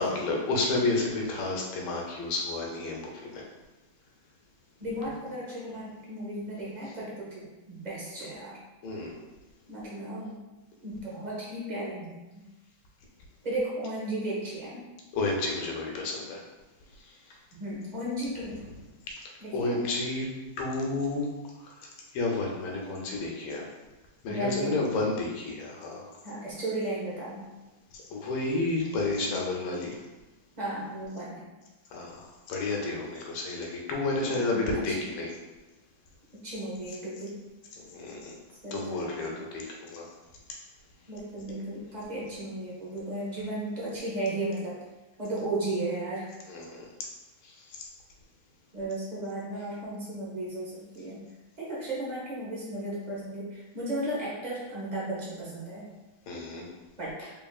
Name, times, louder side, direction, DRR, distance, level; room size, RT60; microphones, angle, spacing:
voice 1, 0.0-3.4 8.8-9.1 15.1-16.4 19.1-19.2 19.5-20.3 20.6-21.3 21.6-21.7 22.1-23.6 24.2-26.1 28.1-30.0 31.9-35.3 37.9-38.3 38.7-40.1 46.5-46.9 56.3-56.7, left 2 dB, 75° left, -1 dB, 1.5 m, -31 dB
voice 2, 4.8-8.6 9.7-10.3 10.8-12.4 13.4-14.8 17.5-18.6 19.4-19.8 24.3-25.2 26.2-27.5 30.6-31.4 34.2-34.9 36.4-37.4 38.6-39.3 41.1-44.8 45.2-46.3 48.7-51.2 51.6-55.9 57.0-57.3, right 1 dB, 60° right, -7 dB, 0.4 m, -35 dB
3.8 x 3.5 x 2.3 m, 1.1 s
omnidirectional pair, 2.4 m